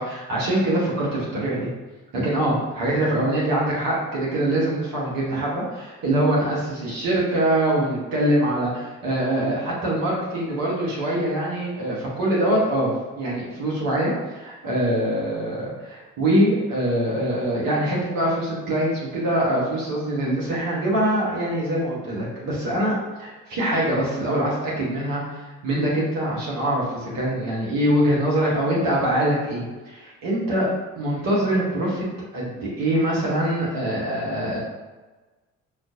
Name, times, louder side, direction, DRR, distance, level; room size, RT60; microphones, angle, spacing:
voice 1, 0.0-1.7 2.1-30.7 31.0-32.1 32.3-34.6, right 1 dB, 60° right, -5 dB, 1.3 m, -24 dB
5.7 x 2.5 x 2.7 m, 1.2 s
figure-of-eight pair, 45°, 39 cm